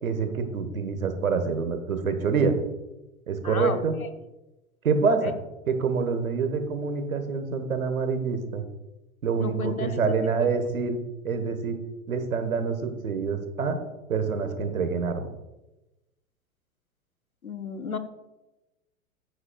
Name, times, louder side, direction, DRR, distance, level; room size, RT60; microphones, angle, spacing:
voice 1, 0.0-2.6 3.3-4.0 4.8-5.4 5.7-8.6 9.2-11.0 11.2-11.8 12.1-13.8 14.1-15.3, right 5 dB, 75° right, 8 dB, 1.5 m, -26 dB
voice 2, 3.4-3.8 5.2-5.3 9.4-10.0 10.4-10.5 17.4-18.0, left 5 dB, 85° left, 9 dB, 1.0 m, -32 dB
15.0 x 8.7 x 2.4 m, 1.0 s
figure-of-eight pair, 90°, 41 cm